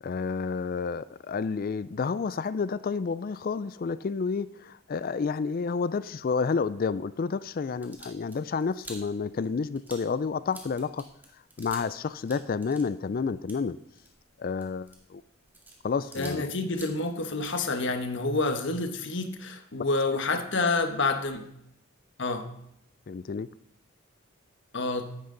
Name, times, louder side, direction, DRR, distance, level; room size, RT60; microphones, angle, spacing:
voice 1, 0.0-11.0 11.6-13.8 14.4-15.2 15.8-16.5 23.1-23.5, left 5 dB, 40° left, 16 dB, 0.3 m, -30 dB
sound 1, 7.7-12.0 12.2-16.4 16.7-18.2, right 1 dB, 10° right, 2.1 m, -49 dB
voice 2, 16.1-21.5 22.2-22.5 24.7-25.1, left 3 dB, 55° left, 7 dB, 1.2 m, -28 dB
14.0 x 11.0 x 3.9 m, 0.75 s
head